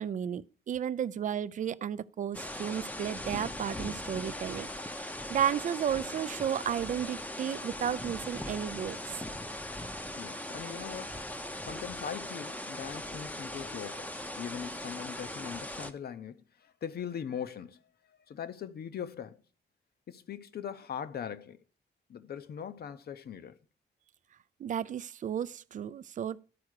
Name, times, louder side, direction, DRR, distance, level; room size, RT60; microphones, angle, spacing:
voice 1, 0.0-9.2 24.6-26.4, right 9 dB, 45° right, 0.4 m, -33 dB
sound 1, 2.3-15.9, left 1 dB, 10° left, 0.6 m, -39 dB
voice 2, 10.2-11.2 11.6-17.8 18.1-19.4 20.1-21.6 22.1-23.6, left 8 dB, 65° left, 0.7 m, -41 dB
12.0 x 4.8 x 6.4 m
wide cardioid pair, 150°, 18 cm